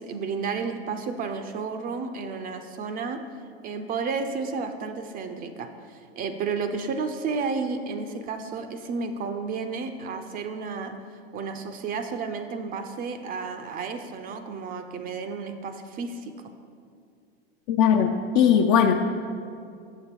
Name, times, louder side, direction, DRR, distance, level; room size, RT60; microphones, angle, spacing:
voice 1, 0.0-3.2 3.6-16.3, right 4 dB, 30° right, 7 dB, 0.4 m, -32 dB
voice 2, 17.7-18.9, left 8 dB, 45° left, 4 dB, 0.5 m, -19 dB
6.9 x 6.6 x 4.4 m, 2.3 s
hypercardioid pair, 95°, 32 cm